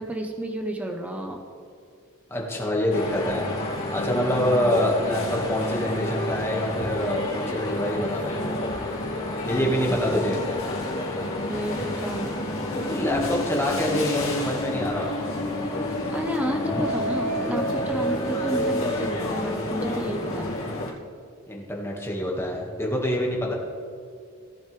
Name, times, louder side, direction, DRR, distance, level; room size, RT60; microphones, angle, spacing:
voice 1, 0.0-1.4 4.5-4.8 9.9-10.1 11.5-12.4 16.1-20.5, equal, 5° right, 3 dB, 0.9 m, -31 dB
voice 2, 2.3-3.5 3.9-8.7 9.4-10.4 12.7-15.1 21.5-23.5, equal, 10° left, -2 dB, 1.8 m, -26 dB
sound 1, 2.9-20.9, left 1 dB, 70° left, 2.4 m, -29 dB
17.0 x 8.1 x 3.4 m, 2.4 s
head